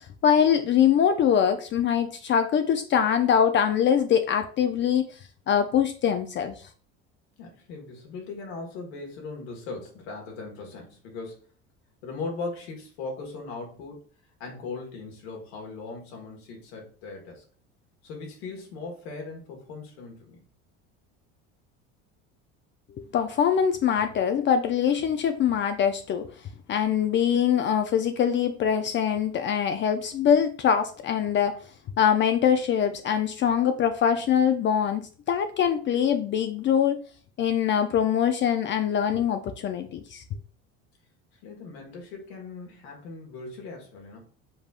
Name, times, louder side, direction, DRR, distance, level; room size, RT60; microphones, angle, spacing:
voice 1, 0.0-5.1 5.5-6.6 23.0-26.3 26.7-31.6 32.0-37.0 37.4-40.2, left 8 dB, 35° left, 0.5 m, -23 dB
voice 2, 7.4-11.5 12.0-14.0 14.4-17.4 18.0-20.4 41.4-44.2, left 3 dB, 85° left, 1.7 m, -39 dB
5.4 x 3.4 x 2.5 m
supercardioid pair, 100°, 31 cm